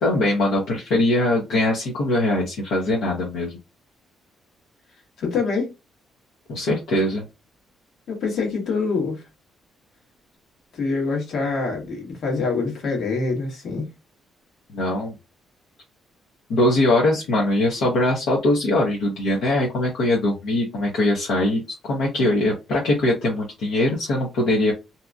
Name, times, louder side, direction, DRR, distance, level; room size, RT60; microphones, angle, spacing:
voice 1, 0.0-3.6 6.5-7.2 14.7-15.1 16.5-24.7, left 1 dB, 85° left, 0.8 m, -21 dB
voice 2, 5.2-5.7 8.1-9.2 10.7-13.9, left 4 dB, 65° left, 1.2 m, -25 dB
2.7 x 2.5 x 2.3 m
cardioid pair, 90°, 0 cm